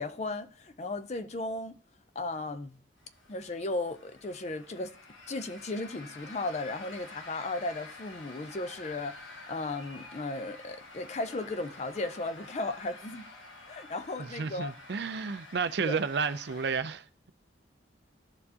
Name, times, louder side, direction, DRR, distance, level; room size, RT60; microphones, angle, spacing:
voice 1, 0.0-1.8 2.1-2.8 3.3-4.9 5.3-13.2 13.7-14.7 15.8-16.0, left 2 dB, 35° left, 0.5 m, -35 dB
sound 1, 3.0-16.8, left 2 dB, 85° left, 1.4 m, -49 dB
voice 2, 14.2-17.3, right 5 dB, 60° right, 0.4 m, -32 dB
13.0 x 4.4 x 2.8 m
head